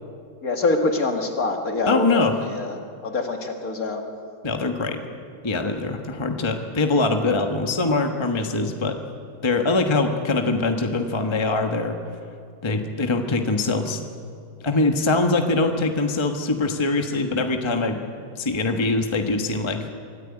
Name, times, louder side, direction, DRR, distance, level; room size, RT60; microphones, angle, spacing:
voice 1, 0.4-4.0, left 3 dB, 45° left, 3 dB, 2.3 m, -25 dB
voice 2, 1.9-2.3 4.4-5.0 5.4-9.0 9.4-12.0 12.6-14.0 14.6-18.0 18.4-19.9, left 3 dB, 15° left, 4 dB, 1.1 m, -23 dB
24.0 x 14.0 x 9.6 m, 2.4 s
omnidirectional pair, 2.1 m